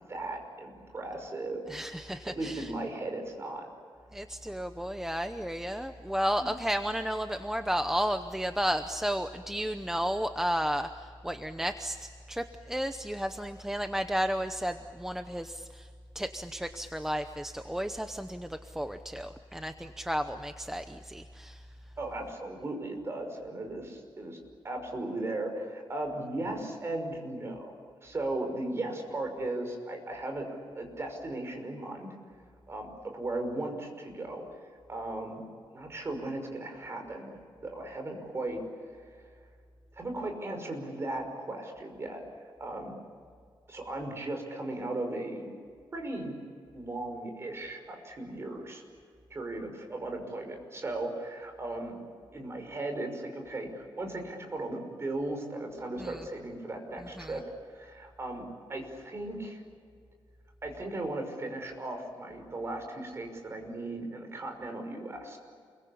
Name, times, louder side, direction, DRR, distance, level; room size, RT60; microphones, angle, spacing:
voice 1, 0.1-1.6 2.3-3.7 6.4-6.5 22.0-24.4 24.6-27.6 28.0-30.5 30.8-32.1 32.7-34.4 34.9-35.4 35.7-38.6 39.9-42.2 42.6-43.0 43.7-45.5 45.9-46.4 46.7-48.8 49.3-52.0 52.3-59.6 60.6-65.4, right 2 dB, 30° right, 4 dB, 5.7 m, -37 dB
voice 2, 1.7-2.7 4.1-15.9 16.1-21.7 56.0-56.2 57.0-57.4, equal, 5° right, 8 dB, 0.8 m, -33 dB
29.0 x 23.0 x 8.6 m, 2.2 s
wide cardioid pair, 155°, 9 cm